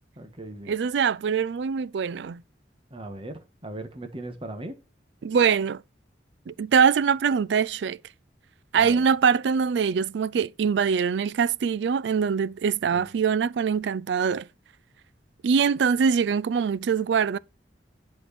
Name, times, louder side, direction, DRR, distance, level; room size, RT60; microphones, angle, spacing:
voice 1, 0.2-0.7 2.9-4.7 8.7-9.0 12.9-13.1, right 1 dB, 30° right, 1.4 m, -38 dB
voice 2, 0.7-2.4 5.2-5.8 6.5-8.0 8.7-14.5 15.4-17.4, right 6 dB, 70° right, 0.4 m, -23 dB
11.0 x 4.6 x 4.1 m
head